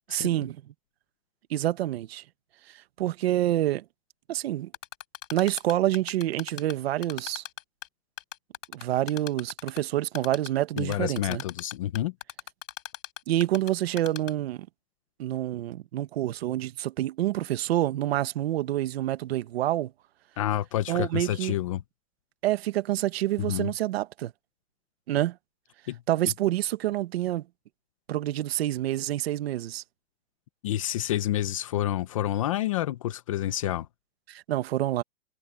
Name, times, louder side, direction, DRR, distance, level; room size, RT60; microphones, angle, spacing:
voice 1, 0.1-0.6 1.5-2.2 2.7-3.8 4.3-4.7 5.3-7.4 8.7-11.4 13.3-14.7 15.2-19.9 20.9-21.6 22.4-24.3 25.1-25.4 26.1-27.4 28.1-29.8 34.3-35.0, right 14 dB, 50° right, 1.3 m, -27 dB
Typing, 4.7-6.7 7.0-7.9 8.2-9.8 10.1-10.5 10.8-13.7 14.0-14.3, left 12 dB, 65° left, 5.8 m, -37 dB
voice 2, 10.8-12.1 20.4-21.8 23.4-23.7 25.9-26.0 30.6-33.9, left 13 dB, 25° left, 0.6 m, -29 dB
supercardioid pair, 170°, 40 cm